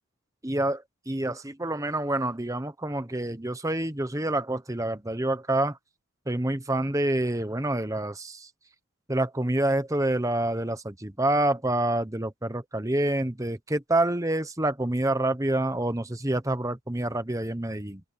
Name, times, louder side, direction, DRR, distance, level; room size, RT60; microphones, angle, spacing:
voice 1, 0.4-5.8 6.3-8.5 9.1-18.0, right 1 dB, 15° right, 1.0 m, -27 dB
open air
head